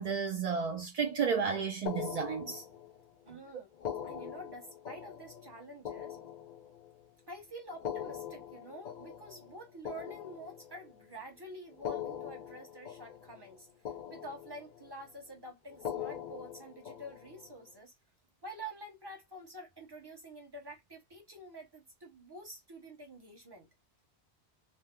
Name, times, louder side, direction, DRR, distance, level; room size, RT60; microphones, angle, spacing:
voice 1, 0.0-2.6, right 6 dB, 50° right, 0.4 m, -32 dB
sound 1, 1.9-3.1 3.7-7.0 7.7-11.0 11.7-13.6 13.8-14.9 15.7-17.5, left 9 dB, 50° left, 0.6 m, -42 dB
voice 2, 3.2-3.7 4.0-6.2 7.3-17.9 18.4-23.7, right 1 dB, 25° right, 1.0 m, -48 dB
2.7 x 2.0 x 3.5 m
omnidirectional pair, 1.1 m